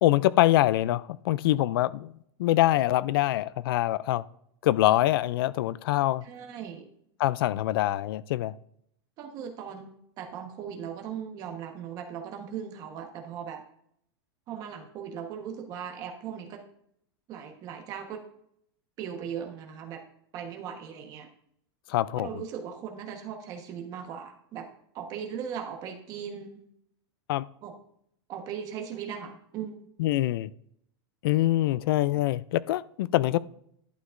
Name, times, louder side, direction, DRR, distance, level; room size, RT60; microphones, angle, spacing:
voice 1, 0.0-2.1 2.4-4.2 4.6-6.3 7.2-8.5 21.9-22.3 27.3-27.4 30.0-30.5 31.2-33.4, left 15 dB, 60° left, 0.4 m, -24 dB
voice 2, 6.2-6.9 9.2-13.6 14.5-16.6 17.3-18.2 19.0-20.0 20.3-21.3 22.2-24.7 24.9-26.6 27.6-27.7 28.3-29.8, right 8 dB, 25° right, 1.2 m, -38 dB
11.5 x 9.3 x 2.6 m
supercardioid pair, 170°, 14 cm